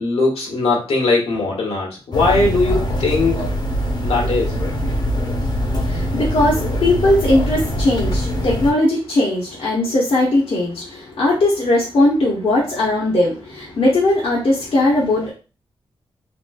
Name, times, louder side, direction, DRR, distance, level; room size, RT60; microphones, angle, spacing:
voice 1, 0.0-3.5 4.0-4.6, left 3 dB, 85° left, -2 dB, 1.2 m, -19 dB
sound 1, 2.1-8.7, equal, 45° left, 0.7 m, -22 dB
voice 2, 5.8-15.3, left 2 dB, 70° left, -5 dB, 0.9 m, -18 dB
3.0 x 3.0 x 2.3 m, 0.34 s
cardioid pair, 80°, 10 cm